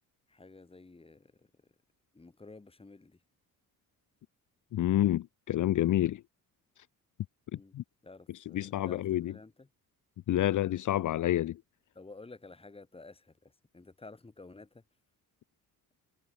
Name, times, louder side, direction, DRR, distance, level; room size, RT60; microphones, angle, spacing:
voice 1, 0.3-1.5 2.1-3.2 7.5-7.7 8.0-9.7 11.9-14.8, left 3 dB, 15° left, 6.0 m, -52 dB
voice 2, 4.7-6.2 7.7-7.8 8.5-9.3 10.3-11.6, left 13 dB, 60° left, 0.8 m, -28 dB
cardioid pair, 150°, 34 cm